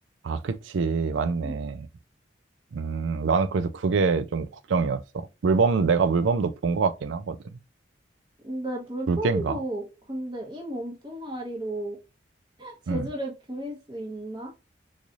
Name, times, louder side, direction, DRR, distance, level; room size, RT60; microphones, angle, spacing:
voice 1, 0.2-1.9 2.7-7.4 9.1-9.6 12.9-13.1, right 4 dB, 85° right, 0.4 m, -25 dB
voice 2, 8.4-12.0 12.6-14.5, right 1 dB, 25° right, 0.9 m, -34 dB
3.9 x 3.1 x 2.4 m
head